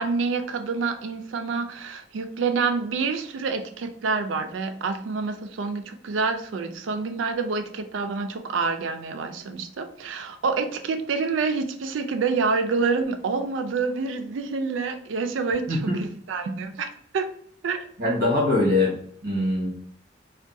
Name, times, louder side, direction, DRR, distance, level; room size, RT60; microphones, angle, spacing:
voice 1, 0.0-17.3 17.6-17.9, right 4 dB, 80° right, 8 dB, 0.4 m, -27 dB
voice 2, 15.7-16.0 18.0-18.9 19.2-19.7, left 2 dB, 55° right, -5 dB, 1.2 m, -22 dB
3.6 x 2.2 x 2.6 m, 0.62 s
head